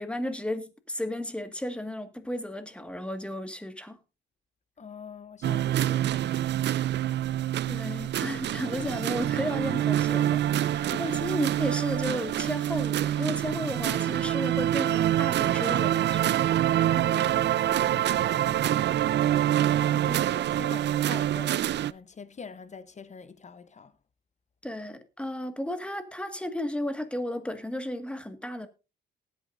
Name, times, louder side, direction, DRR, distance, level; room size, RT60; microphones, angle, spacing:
voice 1, 0.0-4.0 7.7-16.4 19.9-20.2 24.6-28.7, left 1 dB, 5° left, 1.8 m, -34 dB
voice 2, 4.8-6.8 7.1-7.2 10.4-11.2 16.8-18.9 19.8-23.9, left 5 dB, 35° left, 1.0 m, -45 dB
sound 1, 5.4-21.9, right 12 dB, 60° right, 0.5 m, -26 dB
19.0 x 8.8 x 2.6 m
cardioid pair, 90°, 20 cm